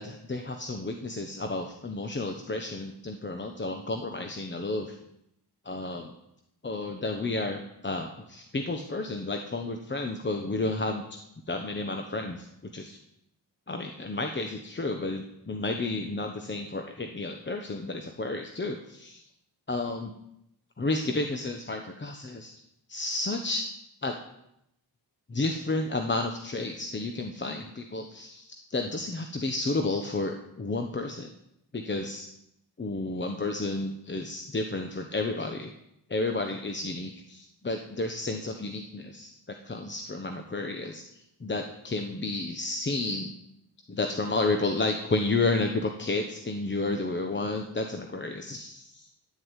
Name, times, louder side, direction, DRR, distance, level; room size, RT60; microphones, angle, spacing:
voice 1, 0.0-5.0 5.6-6.1 6.6-11.2 11.5-13.0 13.7-19.2 19.7-20.1 20.8-22.5 22.9-23.7 24.0-24.2 25.3-31.3 31.7-32.3 32.8-35.7 36.1-41.0 41.4-43.3 43.9-49.1, left 2 dB, 30° left, 4 dB, 1.1 m, -31 dB
11.5 x 7.8 x 8.3 m, 0.80 s
cardioid pair, 85°, 40 cm